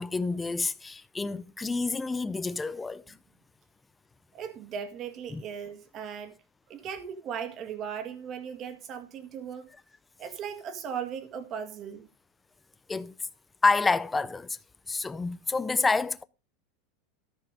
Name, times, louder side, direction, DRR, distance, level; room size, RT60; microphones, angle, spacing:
voice 1, 0.0-3.2 5.3-5.4 12.9-13.1 13.6-14.6 14.9-16.2, left 3 dB, 10° left, 0.5 m, -28 dB
voice 2, 4.3-6.4 6.7-9.7 10.2-12.1, right 7 dB, 35° right, 1.7 m, -37 dB
14.0 x 5.7 x 5.1 m
supercardioid pair, 145°, 0 cm